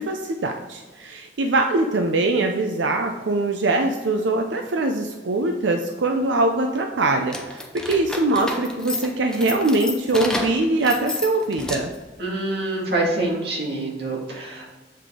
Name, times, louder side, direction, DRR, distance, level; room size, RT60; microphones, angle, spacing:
voice 1, 0.0-11.9, right 2 dB, 75° right, 4 dB, 0.5 m, -22 dB
sound 1, 7.2-12.1, left 1 dB, 5° left, 0.6 m, -31 dB
voice 2, 12.2-14.7, right 2 dB, 60° right, -3 dB, 2.0 m, -26 dB
7.7 x 5.0 x 3.7 m, 1.3 s
head